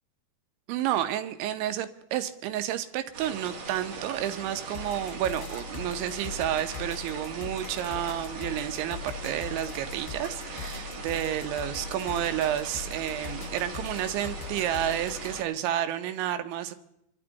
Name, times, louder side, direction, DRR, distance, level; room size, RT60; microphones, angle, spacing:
voice 1, 0.7-16.8, right 11 dB, 80° right, 9 dB, 3.1 m, -30 dB
sound 1, 3.1-15.4, right 4 dB, 55° right, 2.1 m, -40 dB
sound 2, 4.7-15.4, left 8 dB, 70° left, 2.3 m, -41 dB
28.0 x 12.0 x 4.0 m, 0.78 s
omnidirectional pair, 5.6 m